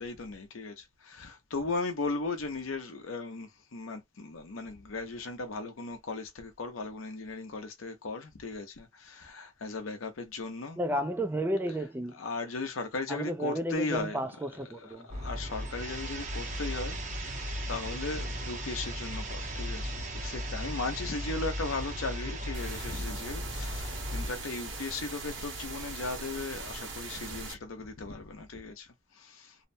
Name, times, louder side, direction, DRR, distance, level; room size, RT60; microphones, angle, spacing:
voice 1, 0.0-10.8 12.1-14.2 14.5-29.6, left 3 dB, 85° left, 0.7 m, -37 dB
voice 2, 10.8-12.2 13.1-15.1, right 1 dB, 10° right, 0.4 m, -32 dB
sound 1, 15.1-24.3, equal, 40° right, 0.7 m, -36 dB
sound 2, 22.5-27.5, right 3 dB, 60° right, 1.1 m, -40 dB
2.7 x 2.1 x 2.6 m
head